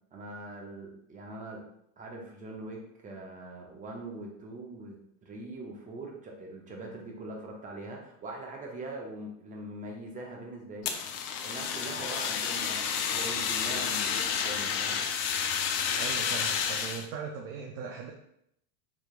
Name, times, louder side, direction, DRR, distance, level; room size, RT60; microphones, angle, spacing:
voice 1, 0.1-1.6 2.0-11.1 11.4-15.0, right 2 dB, 20° right, 0 dB, 0.8 m, -42 dB
Fire, 10.8-17.1, left 7 dB, 40° left, 0.5 m, -30 dB
voice 2, 16.0-18.1, right 6 dB, 35° right, 2 dB, 0.4 m, -39 dB
4.9 x 3.3 x 2.4 m, 0.73 s
supercardioid pair, 135°, 44 cm